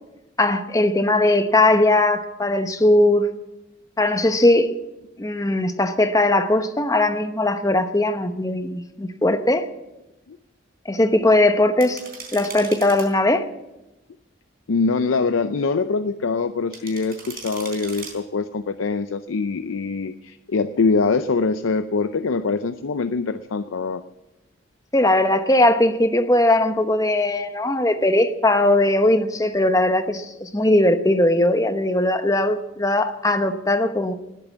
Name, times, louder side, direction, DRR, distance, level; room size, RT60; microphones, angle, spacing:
voice 1, 0.4-3.3 4.0-4.7 5.2-9.7 10.9-12.0 12.3-13.4 24.9-34.1, left 1 dB, 15° left, 0.9 m, -19 dB
sound 1, 11.8-13.1 16.7-18.1, right 5 dB, 45° right, 4.0 m, -38 dB
voice 2, 14.7-24.0, left 4 dB, 85° left, 0.6 m, -23 dB
19.5 x 8.6 x 7.3 m
head